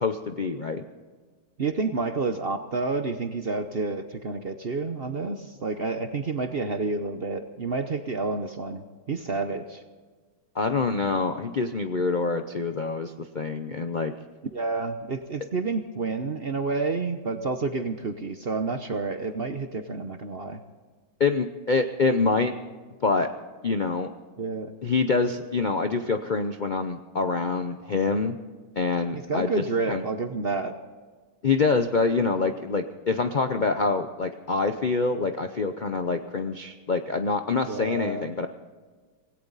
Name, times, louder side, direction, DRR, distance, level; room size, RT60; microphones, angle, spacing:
voice 1, 0.0-0.8 10.6-14.1 21.2-22.5 23.0-23.3 23.6-24.1 24.8-28.4 28.8-29.5 29.9-30.0 31.4-38.5, left 4 dB, 45° left, 7 dB, 0.6 m, -26 dB
voice 2, 1.6-8.8 9.1-9.8 14.5-20.6 24.4-24.7 29.1-30.7 37.7-38.3, right 3 dB, 45° right, 8 dB, 0.9 m, -29 dB
18.0 x 17.0 x 4.0 m, 1.4 s
omnidirectional pair, 1.8 m